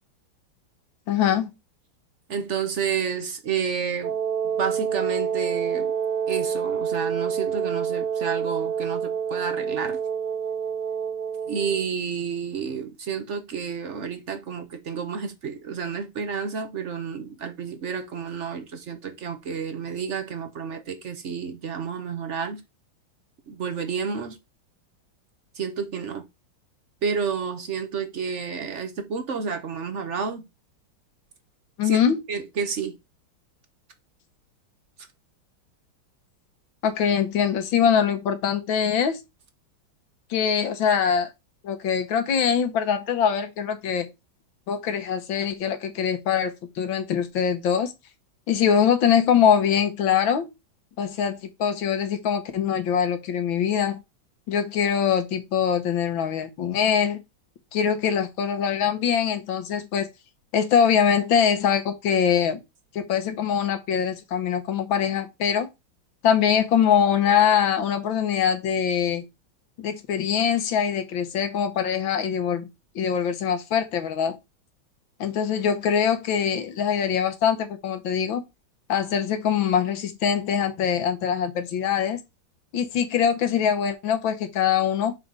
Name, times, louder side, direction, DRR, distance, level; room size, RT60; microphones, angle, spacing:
voice 1, 1.1-1.5 31.8-32.2 36.8-39.2 40.3-41.3 41.6-44.1 44.7-47.9 48.5-50.5 51.0-54.0 54.5-57.2 57.7-60.1 60.5-62.6 62.9-65.7 66.2-69.2 69.8-72.7 73.0-74.4 75.2-78.4 78.9-82.2 82.7-85.2, left 8 dB, 75° left, 1.8 m, -23 dB
voice 2, 2.3-4.2 4.6-5.9 6.3-10.0 11.5-22.6 23.5-24.4 25.5-26.2 27.0-30.4 31.8-32.0 32.3-33.0, right 6 dB, 55° right, 0.8 m, -30 dB
Wind instrument woodwind instrument, 4.0-11.9, right 7 dB, 85° right, 0.4 m, -27 dB
6.5 x 3.6 x 5.3 m
omnidirectional pair, 2.2 m